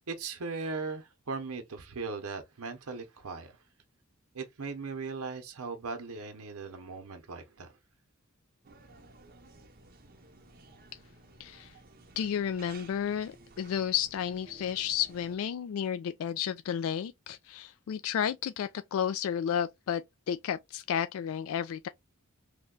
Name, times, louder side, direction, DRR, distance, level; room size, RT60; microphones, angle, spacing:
voice 1, 0.1-3.6 4.3-7.8, right 4 dB, 85° right, 0.8 m, -38 dB
sound 1, 8.6-15.4, right 3 dB, 45° right, 0.7 m, -55 dB
voice 2, 11.4-11.7 12.2-21.9, left 8 dB, 70° left, 0.3 m, -32 dB
3.3 x 2.2 x 3.7 m
head